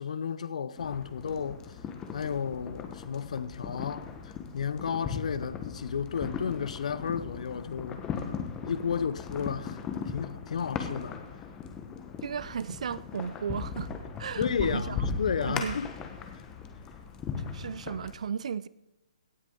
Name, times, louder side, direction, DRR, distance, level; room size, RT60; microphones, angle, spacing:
voice 1, 0.0-1.6 2.1-8.0 8.6-9.8 10.1-11.2 14.4-15.9, left 7 dB, 65° left, 0.7 m, -32 dB
sound 1, 0.8-18.1, left 6 dB, 15° left, 1.2 m, -38 dB
voice 2, 12.2-13.9 14.2-15.0 15.4-15.8 17.5-18.7, right 7 dB, 60° right, 0.6 m, -35 dB
17.0 x 9.5 x 3.9 m
hypercardioid pair, 150°, 4 cm